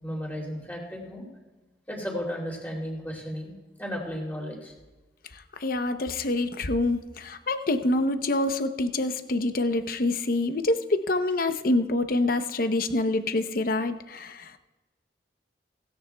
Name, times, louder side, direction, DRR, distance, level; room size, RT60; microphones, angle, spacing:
voice 1, 0.0-1.3 1.9-4.7, equal, 10° left, -2 dB, 2.9 m, -34 dB
voice 2, 5.6-14.5, left 2 dB, 55° left, 9 dB, 0.7 m, -26 dB
16.5 x 16.5 x 2.3 m, 1.1 s
head